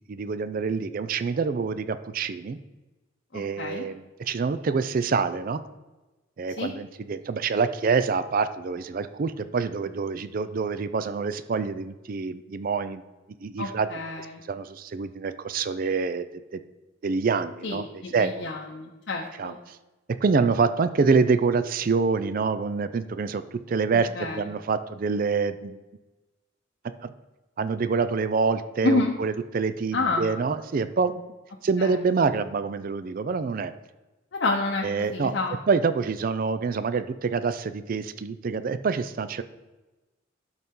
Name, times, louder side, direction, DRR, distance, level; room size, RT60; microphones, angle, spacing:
voice 1, 0.1-2.6 3.3-5.6 6.4-13.0 13.4-13.9 14.5-16.3 16.5-16.6 17.0-18.5 19.4-19.8 20.2-23.4 23.7-25.8 27.0-27.1 27.6-31.2 31.6-33.7 34.8-35.3 35.7-39.4, right 5 dB, 45° right, 12 dB, 0.4 m, -26 dB
voice 2, 3.3-3.8 6.6-6.7 13.6-14.4 17.6-19.6 24.1-24.4 28.8-29.1 29.9-30.3 31.8-32.0 34.3-34.8 35.1-35.6, left 3 dB, 60° left, -1 dB, 0.7 m, -28 dB
12.0 x 4.1 x 3.7 m, 1.1 s
head